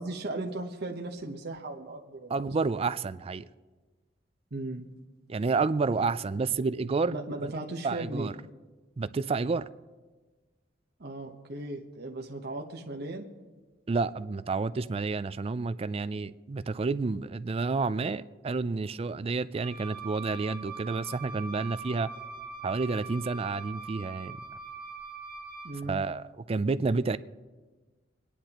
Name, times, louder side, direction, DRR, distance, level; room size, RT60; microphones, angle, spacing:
voice 1, 0.0-2.6 4.5-4.9 7.1-8.3 11.0-13.3 25.6-26.0, right 2 dB, 60° right, 0.9 m, -37 dB
voice 2, 2.3-3.5 5.3-7.1 7.8-8.3 9.0-9.7 13.9-22.1 22.6-24.4 25.9-27.2, right 4 dB, 30° right, 0.3 m, -30 dB
Wind instrument woodwind instrument, 19.5-25.8, right 4 dB, 5° left, 4.4 m, -42 dB
23.5 x 10.0 x 2.9 m
head